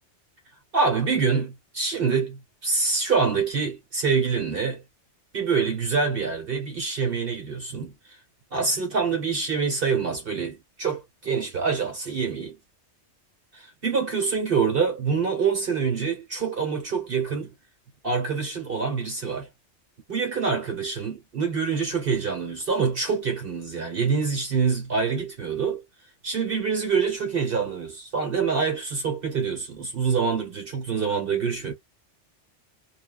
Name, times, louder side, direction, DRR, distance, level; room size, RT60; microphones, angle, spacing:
voice 1, 0.7-4.8 5.3-7.9 8.5-12.6 13.5-17.5 18.0-19.5 20.1-25.8 26.2-31.7, right 5 dB, 55° right, 1.3 m, -26 dB
2.6 x 2.4 x 2.3 m
omnidirectional pair, 1.2 m